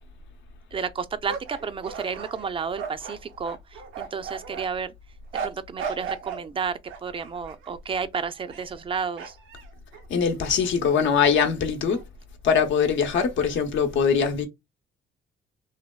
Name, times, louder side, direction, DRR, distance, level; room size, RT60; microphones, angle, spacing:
voice 1, 0.7-4.9 5.4-9.3, right 6 dB, 25° right, 0.3 m, -31 dB
sound 1, 1.3-4.7 5.3-6.5 6.9-7.7 8.4-8.8 9.2-10.7 11.2-11.4 11.9-12.0 13.1-13.6, right 6 dB, 90° right, 0.6 m, -37 dB
voice 2, 10.1-12.0 12.4-14.5, left 6 dB, 75° left, 0.8 m, -22 dB
3.3 x 2.2 x 2.2 m
cardioid pair, 90°, 20 cm